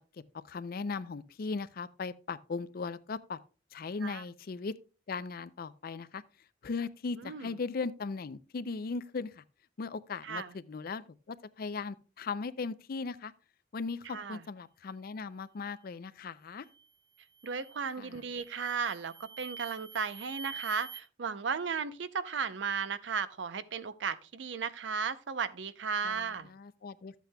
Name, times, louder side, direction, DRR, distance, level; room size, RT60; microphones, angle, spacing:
voice 1, 0.1-3.4 3.7-4.7 5.1-6.2 6.6-9.4 9.8-13.3 13.7-16.7 18.0-18.2 26.0-27.1, left 4 dB, 55° left, 0.4 m, -38 dB
sound 1, 16.6-16.9 17.4-17.9 18.4-21.0, right 6 dB, 20° right, 0.6 m, -47 dB
voice 2, 17.4-26.5, right 6 dB, 75° right, 0.6 m, -35 dB
12.5 x 8.2 x 2.2 m
head